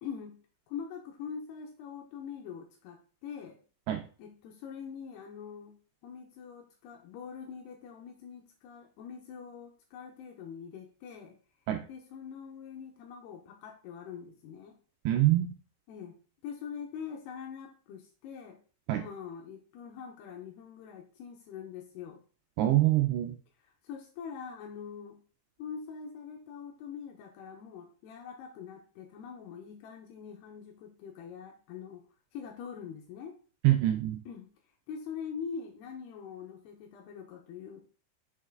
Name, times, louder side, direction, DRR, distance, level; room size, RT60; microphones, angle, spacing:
voice 1, 0.0-0.4 0.7-3.6 4.2-5.7 6.0-11.4 11.9-14.8 15.9-16.1 16.4-18.6 18.9-22.2 23.6-25.2 25.6-32.0 32.3-33.4 34.3-34.5 34.9-37.9, left 7 dB, 80° left, 3 dB, 2.6 m, -43 dB
voice 2, 15.1-15.5 18.9-19.0 22.6-23.4 33.6-34.2, right 14 dB, 85° right, 6 dB, 2.5 m, -25 dB
6.6 x 5.4 x 3.7 m, 0.38 s
omnidirectional pair, 5.4 m